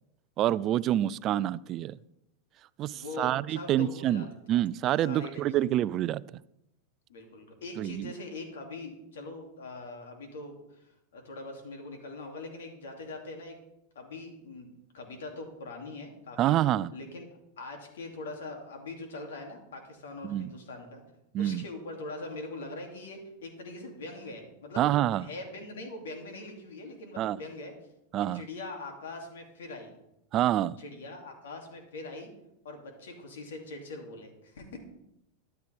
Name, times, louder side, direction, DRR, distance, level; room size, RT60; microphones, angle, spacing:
voice 1, 0.4-2.0 2.8-6.2 7.8-8.1 16.4-16.9 20.2-20.5 21.3-21.6 24.8-25.2 27.2-27.4 28.1-28.4 30.3-30.8, right 12 dB, 40° right, 19 dB, 0.4 m, -27 dB
voice 2, 2.9-4.3 5.0-5.6 7.1-13.6 13.9-16.6 16.9-21.0 21.4-24.8 25.2-27.8 28.3-29.9 30.8-32.3 32.6-34.8, left 2 dB, 80° left, 3 dB, 2.6 m, -42 dB
13.0 x 10.5 x 3.5 m, 0.85 s
hypercardioid pair, 110°, 0 cm